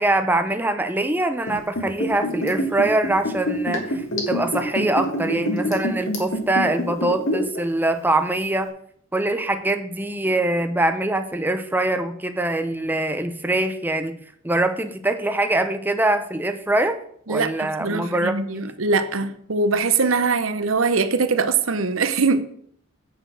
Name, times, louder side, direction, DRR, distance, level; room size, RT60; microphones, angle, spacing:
voice 1, 0.0-8.7 9.1-17.0 17.3-18.6, right 2 dB, 10° right, 0.7 m, -23 dB
Liquid, 1.4-7.6 7.9-8.0, left 1 dB, 65° left, 2.7 m, -25 dB
voice 2, 17.3-22.4, right 4 dB, 65° right, 0.8 m, -22 dB
8.7 x 6.5 x 6.3 m
head